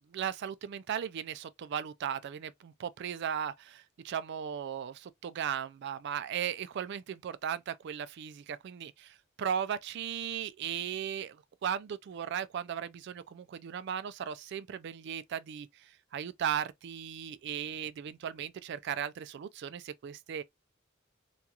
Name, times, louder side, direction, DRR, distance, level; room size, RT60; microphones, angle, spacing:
voice 1, 0.1-11.4 11.6-15.7 16.1-20.4, right 8 dB, 60° right, 0.3 m, -36 dB
2.4 x 2.3 x 2.7 m
head